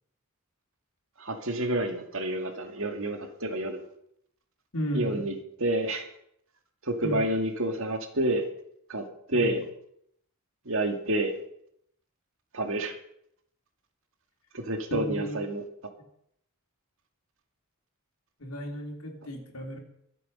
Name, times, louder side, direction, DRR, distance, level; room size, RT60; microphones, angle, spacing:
voice 1, 1.2-3.8 4.9-6.1 6.8-8.4 8.9-9.0 9.3-9.6 10.7-11.3 12.5-13.0 14.5-15.6, right 1 dB, 65° right, 5 dB, 2.2 m, -29 dB
voice 2, 4.7-5.2 7.0-7.1 9.3-9.6 14.9-15.4 18.4-19.8, equal, 80° left, 1 dB, 3.5 m, -34 dB
24.0 x 8.1 x 5.5 m, 0.72 s
head